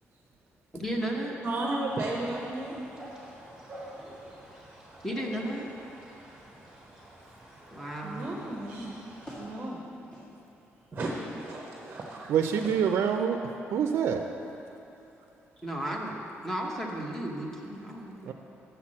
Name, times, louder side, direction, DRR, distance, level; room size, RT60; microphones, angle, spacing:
voice 1, 0.7-1.4 5.0-5.7 7.7-8.5 15.6-16.2 16.4-18.3, right 1 dB, 10° left, -1 dB, 0.9 m, -34 dB
voice 2, 1.4-2.8 8.0-9.0 9.4-9.7 10.9-12.7, right 2 dB, 25° right, -1 dB, 0.8 m, -34 dB
sound 1, 1.9-9.5, right 1 dB, 10° right, 2.0 m, -49 dB
voice 3, 9.2-10.3 10.7-12.0 15.0-15.6, equal, 30° left, -11 dB, 1.8 m, -48 dB
voice 4, 12.3-13.4 13.7-14.2 18.3-18.4, right 7 dB, 65° right, 5 dB, 0.4 m, -26 dB
6.7 x 5.8 x 7.5 m, 3.0 s
cardioid pair, 160°, 5 cm